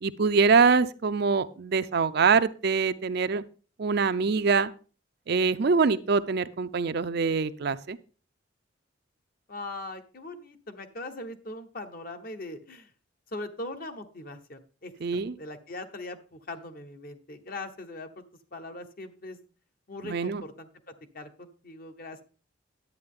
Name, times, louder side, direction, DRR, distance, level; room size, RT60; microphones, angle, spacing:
voice 1, 0.0-3.4 3.8-4.7 5.3-8.0 15.0-15.3 20.0-20.4, right 5 dB, 55° right, 12 dB, 0.5 m, -24 dB
voice 2, 9.5-12.9 13.3-18.2 18.5-19.4 19.9-22.2, left 2 dB, 50° left, 7 dB, 1.0 m, -41 dB
10.5 x 8.6 x 3.7 m, 0.37 s
head